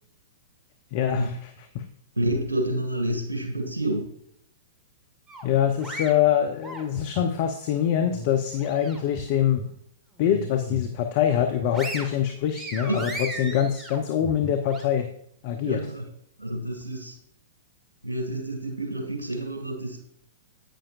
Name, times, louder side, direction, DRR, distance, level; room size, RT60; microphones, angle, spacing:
voice 1, 0.9-1.3 1.7-1.8 5.4-9.6 10.2-15.1 15.4-15.8, left 10 dB, 45° left, 6 dB, 0.8 m, -24 dB
voice 2, 2.1-4.1 12.9-13.6 15.6-16.1 16.4-17.2 18.0-20.0, right 1 dB, 80° right, 4 dB, 2.1 m, -29 dB
sound 1, 5.3-7.3 7.7-9.2 9.6-9.7 10.2-11.0 11.4-14.8, right 1 dB, 15° right, 1.8 m, -37 dB
10.0 x 8.9 x 2.5 m, 0.73 s
figure-of-eight pair, 105°, 0 cm